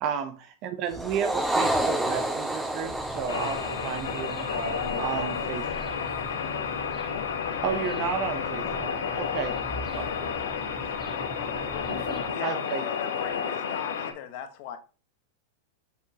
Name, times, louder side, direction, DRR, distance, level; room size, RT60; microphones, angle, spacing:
voice 1, 0.0-4.5 5.0-5.6 7.6-8.9 9.2-9.6 9.9-10.1 12.4-12.8, right 7 dB, 45° right, 0.7 m, -32 dB
sound 1, 0.9-5.5, right 1 dB, 10° right, 1.3 m, -30 dB
sound 2, 2.8-12.3, equal, 15° left, 1.5 m, -42 dB
sound 3, 3.3-14.1, left 7 dB, 85° left, 1.2 m, -31 dB
voice 2, 4.5-6.0 8.6-9.1 11.9-12.3, right 2 dB, 85° right, 2.8 m, -38 dB
voice 3, 9.5-11.2 11.7-11.9 12.3-14.8, left 9 dB, 55° left, 1.2 m, -40 dB
6.6 x 5.8 x 2.9 m
hypercardioid pair, 115°, 0 cm